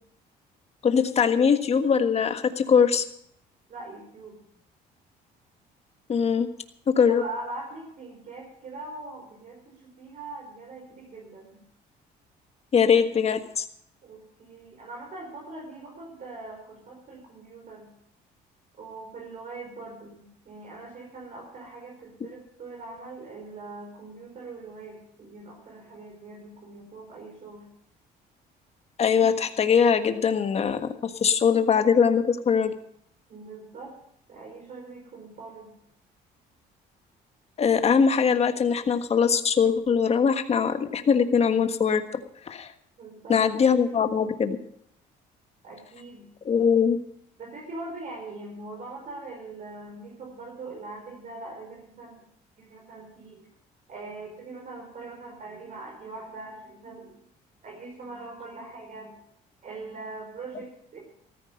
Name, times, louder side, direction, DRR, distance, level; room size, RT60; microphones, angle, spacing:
voice 1, 0.8-3.0 6.1-6.5 6.9-7.2 12.7-13.6 29.0-32.7 37.6-42.2 42.5-42.7 43.3-44.6 46.4-47.0, left 6 dB, 40° left, 8 dB, 1.6 m, -22 dB
voice 2, 3.7-4.4 7.1-11.6 14.0-17.9 18.8-27.7 33.3-34.0 34.3-35.7 43.0-44.1 45.6-46.3 47.4-52.2 52.6-53.5 53.9-57.2 57.6-59.2 59.6-61.0, right 3 dB, 50° right, 0 dB, 4.6 m, -42 dB
14.5 x 14.0 x 5.2 m, 0.71 s
cardioid pair, 110°, 17 cm